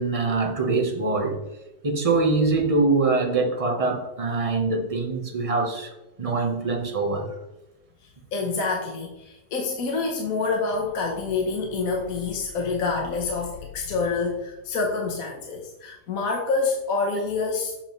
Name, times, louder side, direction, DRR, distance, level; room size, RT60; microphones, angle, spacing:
voice 1, 0.0-1.4 1.8-5.9 6.2-7.3, right 3 dB, 30° right, 0.8 m, -24 dB
voice 2, 8.3-17.7, left 4 dB, 60° left, 1.3 m, -27 dB
7.4 x 7.3 x 3.1 m
omnidirectional pair, 1.8 m